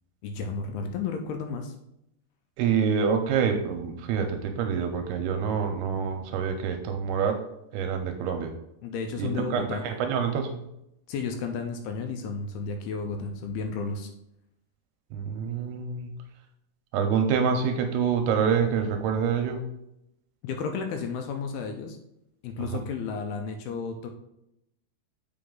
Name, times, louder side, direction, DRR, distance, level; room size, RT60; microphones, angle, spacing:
voice 1, 0.2-1.7 8.8-9.9 11.1-14.1 20.4-22.0 22.4-24.1, left 5 dB, 80° left, 5 dB, 2.4 m, -32 dB
voice 2, 2.6-7.4 7.7-8.5 9.2-10.6 15.1-16.1 16.9-19.6, right 6 dB, 80° right, 5 dB, 2.4 m, -26 dB
7.7 x 4.8 x 3.8 m, 0.82 s
omnidirectional pair, 4.9 m